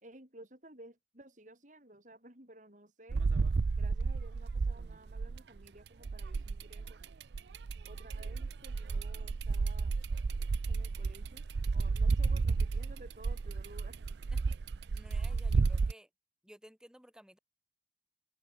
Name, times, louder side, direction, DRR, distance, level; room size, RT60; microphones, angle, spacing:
voice 1, 0.0-3.2 3.8-7.0 7.8-10.0 10.7-11.4 11.7-14.0, right 1 dB, 45° right, 5.7 m, -55 dB
sound 1, 3.1-5.6 6.0-15.9, right 4 dB, 65° right, 0.5 m, -32 dB
voice 2, 14.9-16.1 16.4-17.4, equal, 5° right, 7.9 m, -56 dB
head